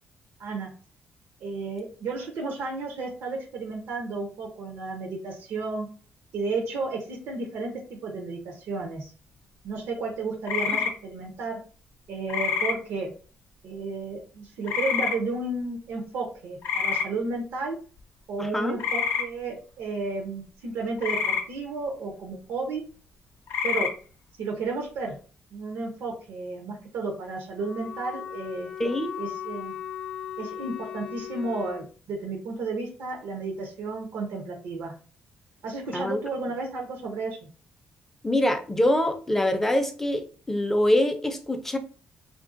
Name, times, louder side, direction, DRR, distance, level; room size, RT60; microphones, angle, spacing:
voice 1, 1.4-5.9 6.3-9.1 9.6-11.6 12.1-13.1 13.6-17.8 18.3-22.8 23.6-23.9 24.4-25.2 25.5-28.7 29.2-29.7 30.4-34.9 35.6-37.4, right 3 dB, 85° right, 2 dB, 0.6 m, -32 dB
sound 1, 10.5-10.9 12.3-12.7 14.7-15.2 16.6-17.1 18.8-19.2 21.0-21.4 23.5-23.9, left 6 dB, 80° left, 0.6 m, -26 dB
voice 2, 18.4-18.8 28.8-29.1 35.9-36.2 38.2-41.8, left 1 dB, 10° left, 7 dB, 0.4 m, -24 dB
Wind instrument woodwind instrument, 27.5-31.9, left 9 dB, 40° left, 0.7 m, -38 dB
3.3 x 2.5 x 2.5 m, 0.39 s
cardioid pair, 155°, 4 cm